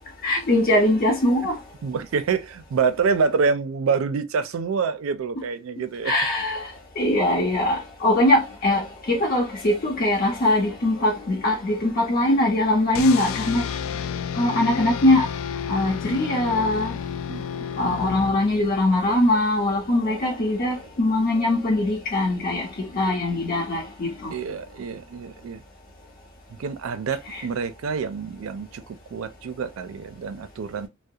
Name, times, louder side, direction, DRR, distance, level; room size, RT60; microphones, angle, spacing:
voice 1, 0.2-1.6 6.0-6.6 7.0-13.6 14.4-15.3 15.7-16.9 17.8-24.3 27.3-27.4, left 1 dB, 45° left, 0.8 m, -22 dB
voice 2, 1.8-6.1 17.3-17.4 17.8-18.1 24.3-25.6 26.5-30.9, right 5 dB, 85° right, 0.4 m, -27 dB
sound 1, 12.9-18.8, left 7 dB, 75° left, 0.3 m, -31 dB
2.3 x 2.0 x 2.7 m
head